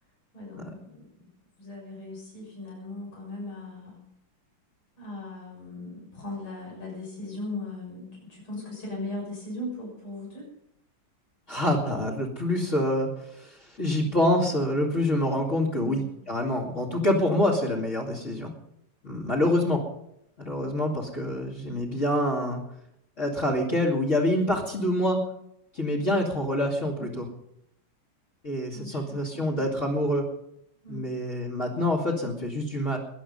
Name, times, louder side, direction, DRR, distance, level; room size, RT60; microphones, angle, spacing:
voice 1, 0.3-1.3 1.6-4.0 5.0-10.5 15.7-16.2 19.2-19.5 27.0-27.2 28.7-29.9 30.8-31.1, left 2 dB, 75° left, -3 dB, 7.4 m, -39 dB
voice 2, 11.5-18.5 19.0-19.8 20.4-22.6 23.2-25.2 25.7-27.3 28.4-30.2 30.9-33.0, left 1 dB, 35° left, -4 dB, 2.7 m, -26 dB
20.5 x 11.0 x 5.5 m, 0.76 s
omnidirectional pair, 2.3 m